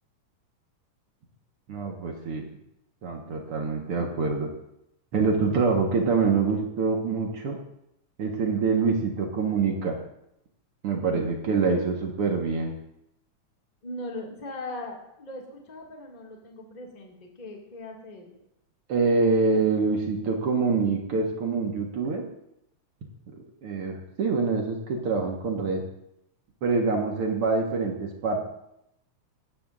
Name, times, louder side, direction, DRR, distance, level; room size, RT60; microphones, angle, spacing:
voice 1, 1.7-2.4 3.0-4.5 5.1-7.6 8.2-10.0 10.8-12.7 18.9-22.2 23.4-25.8 26.6-28.4, right 4 dB, 55° right, 1 dB, 2.0 m, -25 dB
voice 2, 13.8-18.4, left 1 dB, 15° left, -1 dB, 1.8 m, -40 dB
17.5 x 13.0 x 2.6 m, 0.80 s
omnidirectional pair, 3.6 m